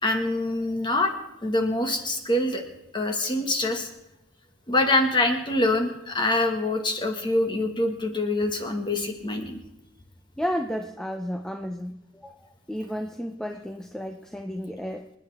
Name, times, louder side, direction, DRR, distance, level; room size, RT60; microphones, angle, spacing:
voice 1, 0.0-1.1 1.4-2.6 2.9-3.9 4.7-9.6, left 2 dB, 20° left, 4 dB, 1.6 m, -25 dB
voice 2, 10.4-15.1, equal, 5° left, 5 dB, 0.5 m, -32 dB
27.0 x 10.0 x 3.5 m, 0.94 s
head